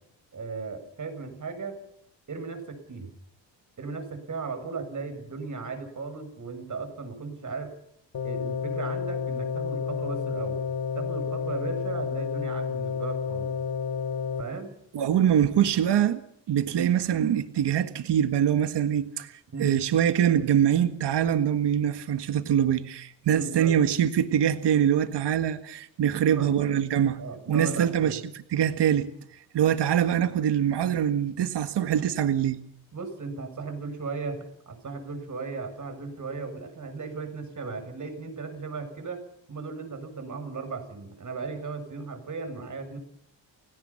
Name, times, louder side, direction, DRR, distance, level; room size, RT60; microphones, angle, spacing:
voice 1, 0.3-1.8 2.3-3.1 3.8-7.7 8.2-10.6 10.9-13.5 14.4-14.7 19.5-19.8 23.3-23.8 26.1-26.5 27.2-28.2 32.9-39.2 39.5-43.0, right 4 dB, 40° right, 8 dB, 7.1 m, -36 dB
sound 1, 8.1-14.4, left 6 dB, 45° left, 2.1 m, -30 dB
voice 2, 14.9-16.2 16.5-19.3 19.6-27.2 27.5-28.2 28.5-29.1 29.5-32.6, right 9 dB, 60° right, 10 dB, 1.7 m, -24 dB
30.0 x 17.0 x 5.8 m, 0.71 s
cardioid pair, 100°, 46 cm